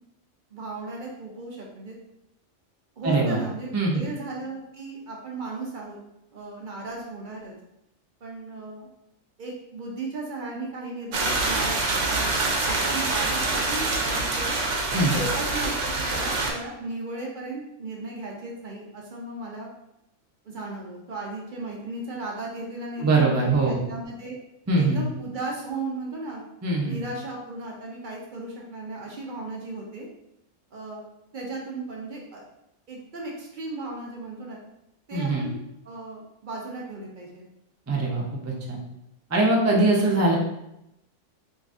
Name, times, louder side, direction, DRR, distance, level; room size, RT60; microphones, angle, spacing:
voice 1, 0.5-2.0 3.0-6.0 6.3-7.5 8.2-8.9 9.4-14.5 15.1-19.7 20.4-24.4 24.8-26.4 26.8-30.1 30.7-31.0 31.3-32.4 32.9-34.6 35.1-35.5 35.8-37.5, right 2 dB, 50° right, -2 dB, 0.7 m, -36 dB
voice 2, 3.0-3.4 3.7-4.0 14.9-15.1 23.0-23.8 24.7-25.0 26.6-27.0 35.1-35.4 37.9-38.8 39.3-40.4, right 2 dB, 25° right, -3 dB, 0.3 m, -22 dB
sound 1, 11.1-16.5, right 2 dB, 85° right, 1.0 m, -25 dB
3.6 x 3.1 x 2.5 m, 0.85 s
omnidirectional pair, 1.2 m